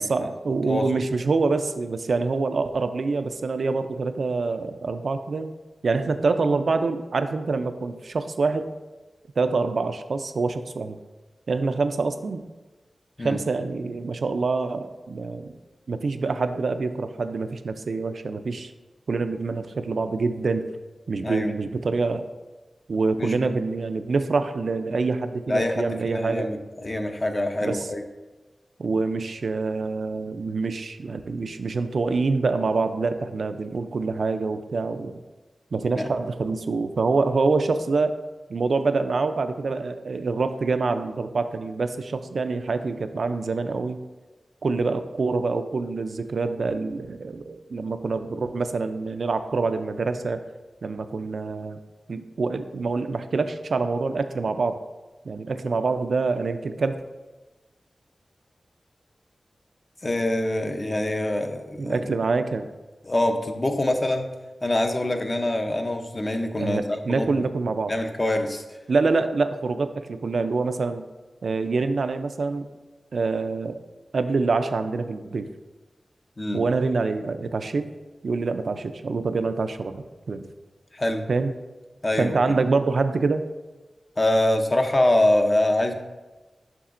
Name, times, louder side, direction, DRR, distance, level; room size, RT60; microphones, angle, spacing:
voice 1, 0.0-5.5 5.8-8.7 9.4-11.0 11.5-12.4 13.2-15.6 15.9-18.7 19.1-20.7 21.1-22.3 22.9-26.5 27.6-27.9 28.8-35.2 35.7-38.2 38.5-44.0 44.6-50.4 50.8-51.8 52.1-54.8 55.2-57.0 61.8-62.7 66.6-67.9 68.9-71.0 71.4-72.7 73.1-73.8 74.1-75.5 76.5-77.9 78.2-80.4 81.3-81.5 82.2-83.5, right 4 dB, 75° right, 9 dB, 0.4 m, -26 dB
voice 2, 23.2-23.5 25.5-28.0 36.0-36.1 60.0-62.0 63.0-64.3 64.6-67.4 67.8-68.8 76.4-76.6 80.9-81.3 82.0-82.6 84.2-85.9, left 1 dB, 35° left, 5 dB, 0.6 m, -25 dB
7.1 x 6.0 x 2.5 m, 1.2 s
wide cardioid pair, 75°, 0 cm